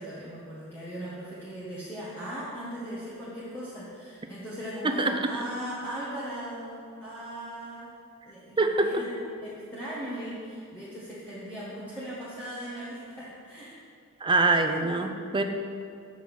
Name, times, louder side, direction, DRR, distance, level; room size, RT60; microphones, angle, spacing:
voice 1, 0.0-7.9 8.2-9.1 9.4-13.8, equal, 10° left, -10 dB, 1.3 m, -38 dB
voice 2, 4.8-5.3 8.6-9.0 14.2-15.4, right 2 dB, 20° right, 5 dB, 0.5 m, -24 dB
7.2 x 6.0 x 6.2 m, 2.4 s
head